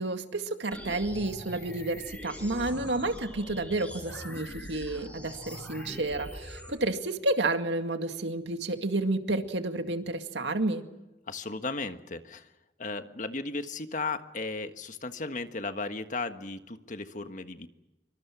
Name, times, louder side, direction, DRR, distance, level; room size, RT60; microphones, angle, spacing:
voice 1, 0.0-10.8, right 2 dB, 90° right, 7 dB, 2.1 m, -30 dB
sound 1, 0.7-6.7, equal, 10° left, 7.1 m, -42 dB
voice 2, 11.3-12.5 12.8-17.7, left 3 dB, 45° left, 8 dB, 1.5 m, -35 dB
26.5 x 24.5 x 6.1 m, 0.99 s
head